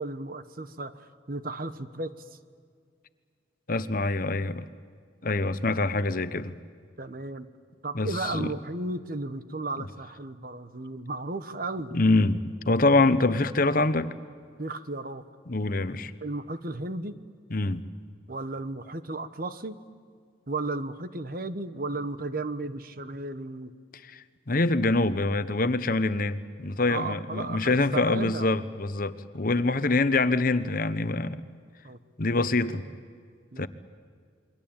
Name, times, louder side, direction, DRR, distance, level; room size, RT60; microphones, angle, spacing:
voice 1, 0.0-2.4 7.0-7.5 7.8-12.0 14.6-15.2 16.2-17.1 18.3-19.8 20.5-23.7 26.9-28.5 31.8-32.0 32.6-33.0 33.5-33.7, right 2 dB, 50° right, 1.2 m, -34 dB
voice 2, 3.7-4.6 5.2-6.6 7.9-8.5 11.9-14.1 15.5-16.1 17.5-17.8 24.1-31.5 32.2-32.8 33.6-33.7, left 2 dB, 50° left, 1.0 m, -25 dB
29.0 x 23.0 x 8.9 m
head